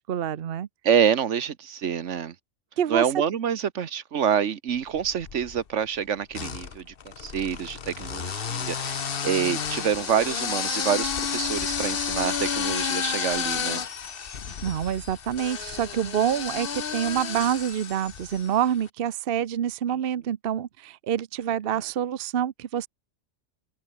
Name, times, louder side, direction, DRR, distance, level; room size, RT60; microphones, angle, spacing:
voice 1, 0.0-0.7 2.8-3.0 14.6-22.9, right 9 dB, 55° right, 0.9 m, -27 dB
voice 2, 0.8-2.3 2.9-13.8 19.9-20.0, right 8 dB, 75° right, 1.3 m, -27 dB
sound 1, 4.9-5.6 6.3-18.6, left 7 dB, 50° left, 1.2 m, -31 dB
omnidirectional pair, 1.2 m